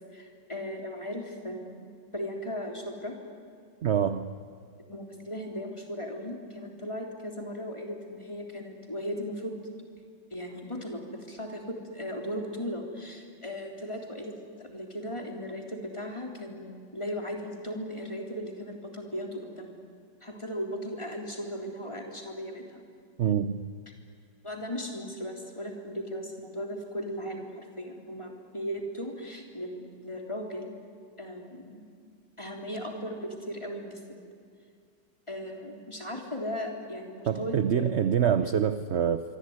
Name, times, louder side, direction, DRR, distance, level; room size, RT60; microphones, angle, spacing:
voice 1, 0.1-3.2 4.9-9.5 10.3-14.3 14.6-19.7 20.2-22.8 24.4-30.7 31.2-31.8 32.4-34.2 35.3-38.1, equal, 15° left, 1 dB, 3.5 m, -37 dB
voice 2, 3.8-4.3 23.2-23.6 37.3-39.2, right 8 dB, 55° right, 11 dB, 0.8 m, -25 dB
25.0 x 24.5 x 9.6 m, 2.3 s
omnidirectional pair, 2.0 m